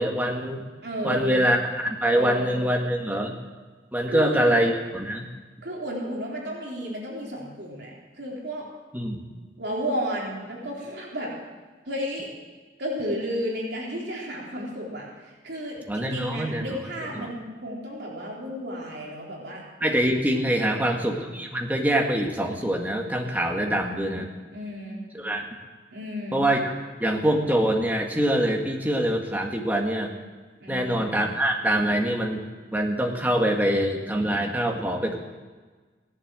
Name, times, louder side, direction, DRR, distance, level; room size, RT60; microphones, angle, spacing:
voice 1, 0.0-0.6 1.0-3.3 3.9-5.3 8.9-9.2 15.9-16.8 17.2-17.3 19.8-24.3 25.1-25.5 26.3-26.7 27.0-30.1 30.7-32.4 32.7-35.2, right 1 dB, 10° right, 1 dB, 1.7 m, -24 dB
voice 2, 0.8-1.4 2.1-2.7 4.1-4.5 5.6-8.7 9.6-11.3 11.9-12.3 12.8-19.6 20.6-21.1 23.6-24.0 24.5-25.1 25.9-26.4 30.6-31.1, equal, 65° right, -3 dB, 3.8 m, -33 dB
16.5 x 11.0 x 7.6 m, 1.4 s
head